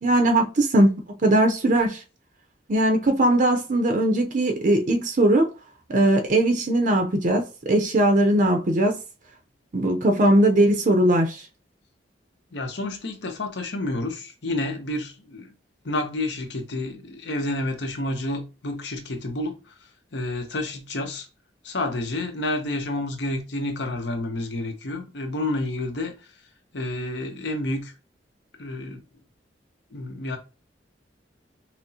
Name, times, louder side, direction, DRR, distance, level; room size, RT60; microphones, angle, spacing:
voice 1, 0.0-2.0 2.7-5.5 5.9-9.0 9.7-11.4, right 1 dB, 45° right, 0.6 m, -20 dB
voice 2, 12.5-15.5 15.8-19.7 20.1-21.3 21.6-26.1 26.7-27.9 28.6-29.0 29.9-30.4, left 2 dB, 70° left, 0.9 m, -29 dB
5.9 x 2.0 x 2.8 m
head